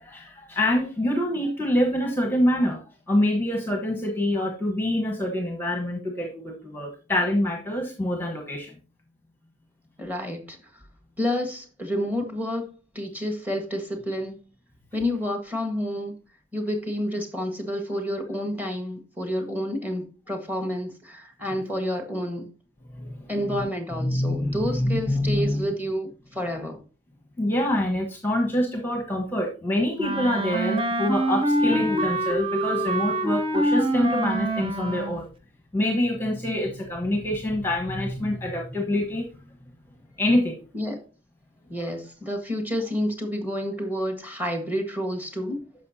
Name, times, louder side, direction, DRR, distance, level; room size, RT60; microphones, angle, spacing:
voice 1, 0.0-8.7 22.9-23.7 24.0-25.7 27.4-35.3 35.7-39.3 40.2-40.6, left 1 dB, 10° left, 2 dB, 1.1 m, -26 dB
voice 2, 10.0-10.7 11.2-14.4 14.9-16.1 16.5-22.5 23.3-26.8 40.7-41.0 41.7-45.6, equal, 10° right, 4 dB, 1.6 m, -29 dB
Wind instrument woodwind instrument, 30.0-35.2, right 1 dB, 25° right, 0.9 m, -25 dB
10.5 x 6.5 x 2.8 m, 0.35 s
head